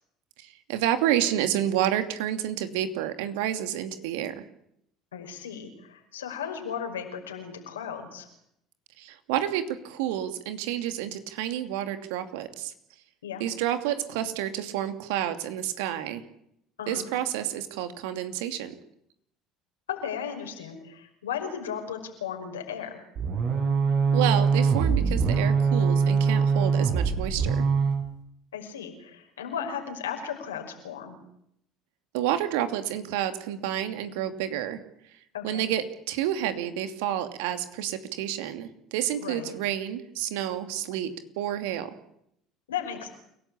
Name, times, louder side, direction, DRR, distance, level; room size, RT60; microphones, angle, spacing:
voice 1, 0.4-4.4 9.0-12.7 13.4-16.2 16.9-18.7 24.1-27.6 32.1-34.8 35.4-41.1 41.4-41.9, right 11 dB, 70° right, 9 dB, 2.6 m, -29 dB
voice 2, 5.1-8.3 13.2-13.4 16.8-17.1 19.9-23.0 28.5-31.2 35.3-35.7 39.2-39.5 42.7-43.1, left 8 dB, 85° left, 4 dB, 5.6 m, -35 dB
sound 1, 23.2-28.0, right 5 dB, 55° right, 6.5 m, -23 dB
29.5 x 18.0 x 8.7 m, 0.74 s
hypercardioid pair, 65°, 0 cm